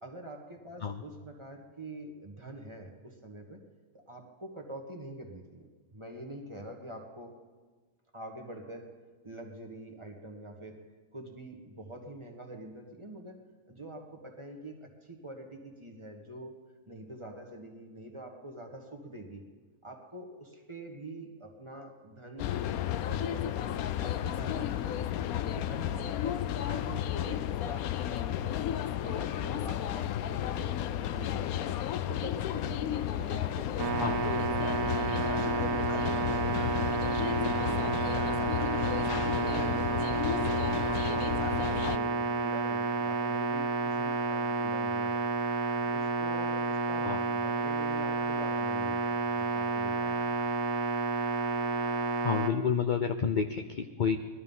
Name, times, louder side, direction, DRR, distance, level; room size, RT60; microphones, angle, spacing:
voice 1, 0.0-3.6 3.9-7.4 8.1-8.9 9.2-10.8 11.1-13.4 13.7-16.6 16.9-19.4 19.8-22.6 23.0-23.6 24.0-28.5 29.0-31.5 32.1-35.2 35.5-38.2 38.6-40.7 41.0-45.2 45.7-50.4, right 1 dB, 20° right, 2 dB, 1.6 m, -45 dB
sound 1, 22.4-42.0, left 11 dB, 80° left, 1.1 m, -33 dB
sound 2, 33.8-52.5, right 4 dB, 70° right, 1.5 m, -30 dB
voice 2, 52.2-54.2, left 6 dB, 50° left, 7 dB, 0.5 m, -29 dB
19.0 x 12.5 x 5.5 m, 1.4 s
omnidirectional pair, 1.5 m